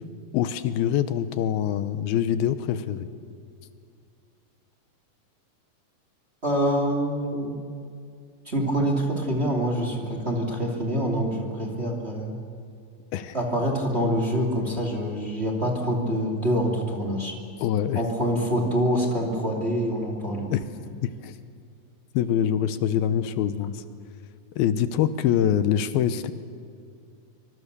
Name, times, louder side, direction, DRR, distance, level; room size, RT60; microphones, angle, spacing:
voice 1, 0.3-3.1 13.1-13.4 17.6-18.0 20.5-20.7 21.0-21.3 22.1-23.8 24.6-26.3, left 9 dB, 85° left, 12 dB, 2.7 m, -24 dB
voice 2, 6.4-7.6 8.5-12.4 13.3-17.3 17.9-20.5, equal, 20° right, 1 dB, 2.3 m, -25 dB
25.0 x 24.5 x 6.8 m, 2.3 s
omnidirectional pair, 4.4 m